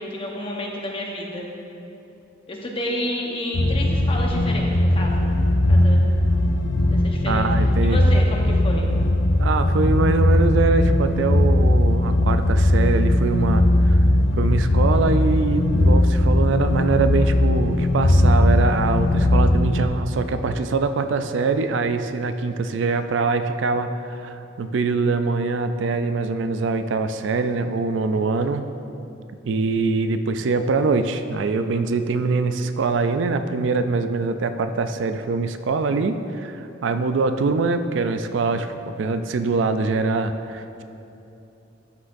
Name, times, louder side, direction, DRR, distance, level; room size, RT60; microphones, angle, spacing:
voice 1, 0.0-1.4 2.5-5.4 5.7-6.0 6.9-7.5 7.8-8.9, left 1 dB, 30° left, -1 dB, 1.0 m, -30 dB
sound 1, 3.5-19.9, left 1 dB, 65° left, 0.5 m, -19 dB
voice 2, 7.3-8.0 9.4-14.0 14.4-28.7 29.4-40.8, right 4 dB, 70° right, 9 dB, 0.4 m, -23 dB
12.5 x 6.3 x 2.6 m, 2.8 s
head